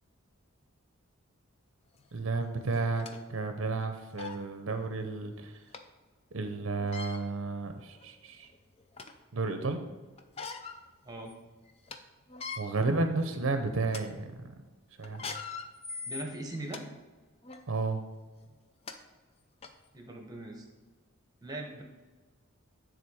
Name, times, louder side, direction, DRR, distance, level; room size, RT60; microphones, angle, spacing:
sound 1, 2.0-2.1 2.7-3.2 3.8-3.9 4.2-4.4 5.7-5.8 6.8-7.2 8.0-8.1 8.5-9.2 10.2-10.8 11.2-11.3 11.7-12.0 12.3-12.6 13.2-13.4 13.8-14.0 15.0-16.8 17.4-17.6 18.5-18.6 18.9-19.0 19.6-19.7, left 5 dB, 25° left, 0.4 m, -41 dB
voice 1, 2.1-5.5 6.3-8.5 9.3-9.8 12.6-14.5 15.0-15.2 17.7-18.0, right 3 dB, 60° right, 7 dB, 0.6 m, -32 dB
voice 2, 16.0-16.8 19.9-20.6 21.4-21.8, right 2 dB, 15° right, 2 dB, 1.0 m, -40 dB
9.7 x 3.9 x 4.8 m, 1.3 s
head